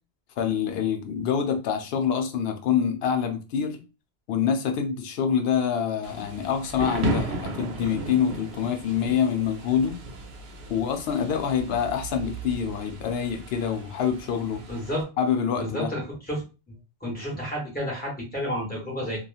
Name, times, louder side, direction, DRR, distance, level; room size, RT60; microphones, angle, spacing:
voice 1, 0.4-3.8 4.3-10.0 10.7-14.6 15.2-15.9, left 8 dB, 70° left, 0.8 m, -26 dB
Thunder / Rain, 6.0-15.0, right 3 dB, 70° right, 0.8 m, -35 dB
voice 2, 14.7-15.0 15.5-16.4 16.7-16.8 17.0-19.2, equal, 10° left, 1.2 m, -31 dB
2.9 x 2.4 x 2.4 m
omnidirectional pair, 1.1 m